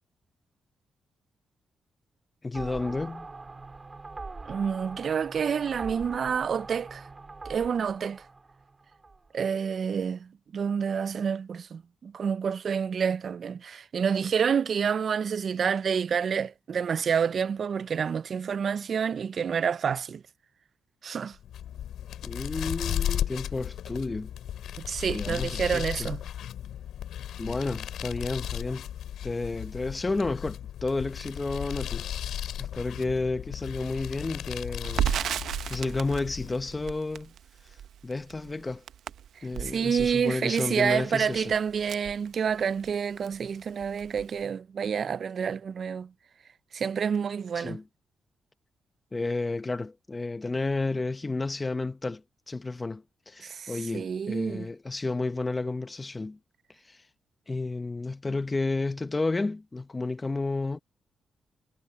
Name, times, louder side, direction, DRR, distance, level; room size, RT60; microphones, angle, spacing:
voice 1, 2.4-3.3 22.2-24.3 25.1-26.1 27.4-28.9 29.2-35.1 35.7-37.3 38.0-38.8 39.4-41.6 47.6-47.8 49.1-56.4 56.8-57.0 57.5-60.8, left 3 dB, 25° left, 0.9 m, -31 dB
sound 1, 2.5-9.3, right 3 dB, 30° right, 2.6 m, -43 dB
voice 2, 4.5-7.0 7.5-8.2 9.3-20.2 21.0-21.4 24.8-26.2 39.6-46.1 46.7-47.8 53.4-54.7, right 7 dB, 55° right, 0.3 m, -28 dB
sound 2, 21.4-36.9, left 10 dB, 90° left, 3.4 m, -35 dB
Crackle, 34.8-42.9 43.2-43.4 43.7-44.4, right 9 dB, 80° right, 0.7 m, -34 dB
cardioid pair, 95°, 0 cm